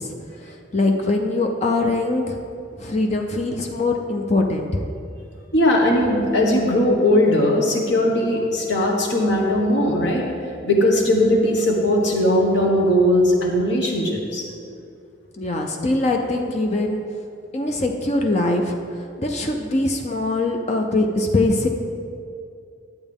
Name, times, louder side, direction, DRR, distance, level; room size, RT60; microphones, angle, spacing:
voice 1, 0.0-2.4 2.8-4.8 15.4-17.0 17.5-21.7, left 2 dB, 35° left, 3 dB, 0.5 m, -22 dB
voice 2, 5.5-10.2 10.6-14.4, left 1 dB, 60° left, 0 dB, 1.4 m, -19 dB
11.5 x 8.1 x 3.6 m, 2.4 s
head